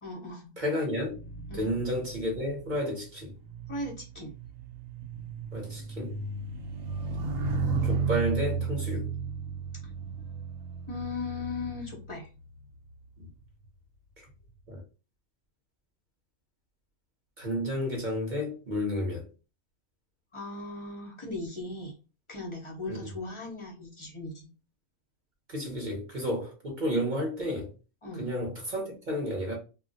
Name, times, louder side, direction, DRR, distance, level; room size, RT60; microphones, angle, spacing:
voice 1, 0.0-0.5 1.5-1.7 3.7-4.3 10.9-12.3 20.3-21.9 22.3-24.5 28.0-28.3, left 2 dB, 35° left, 0.5 m, -38 dB
voice 2, 0.6-1.2 1.5-3.4 5.5-6.2 7.8-9.1 13.2-13.3 14.2-14.3 14.7-14.8 17.4-19.3 22.9-23.1 25.5-27.7 28.1-29.5, equal, 45° right, 0.8 m, -31 dB
sound 1, 1.0-12.6 13.4-13.7, right 4 dB, 75° right, 1.0 m, -34 dB
2.4 x 2.0 x 3.8 m
omnidirectional pair, 1.5 m